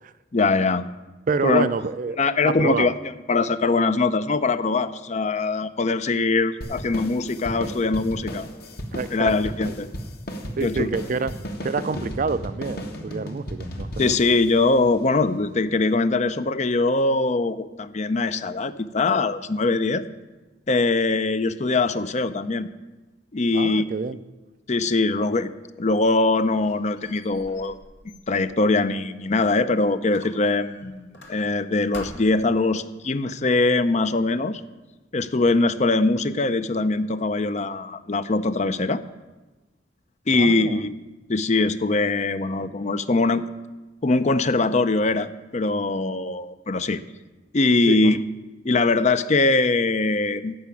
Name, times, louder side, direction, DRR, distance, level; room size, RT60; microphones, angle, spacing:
voice 1, 0.3-0.8 1.4-1.7 2.2-2.9 3.3-8.5 9.1-9.9 10.6-10.9 14.0-20.0 20.7-22.7 23.3-23.9 24.7-25.5 25.8-27.8 28.3-34.6 35.1-39.0 40.3-40.9 41.3-43.4 44.0-47.0 47.5-48.2 48.6-50.5, left 3 dB, 40° left, 13 dB, 0.6 m, -22 dB
voice 2, 1.3-2.2 2.4-2.9 8.9-9.3 10.6-11.3 11.6-14.1 23.5-24.2 40.3-40.8 47.9-48.2, right 4 dB, 45° right, 14 dB, 0.5 m, -27 dB
sound 1, 6.6-15.4, equal, 60° left, 1.5 m, -35 dB
Squeak, 26.0-29.7 30.1-31.6 31.9-32.5, left 1 dB, 85° left, 2.3 m, -46 dB
14.0 x 6.0 x 8.6 m, 1.2 s
head